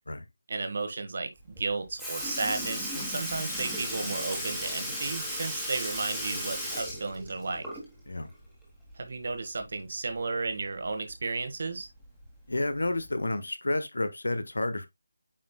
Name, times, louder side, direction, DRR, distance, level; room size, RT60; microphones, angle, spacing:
voice 1, 0.5-7.7 9.0-11.9, right 3 dB, 45° right, 1.4 m, -33 dB
Sink (filling or washing) / Liquid, 1.6-1.7 2.0-8.1 8.4-8.5 10.1-10.2 11.1-11.2 12.0-12.3 13.1-13.2, equal, ahead, 1.7 m, -35 dB
voice 2, 12.5-14.9, left 2 dB, 60° left, 1.1 m, -30 dB
8.8 x 5.1 x 2.2 m
figure-of-eight pair, 155°, 0 cm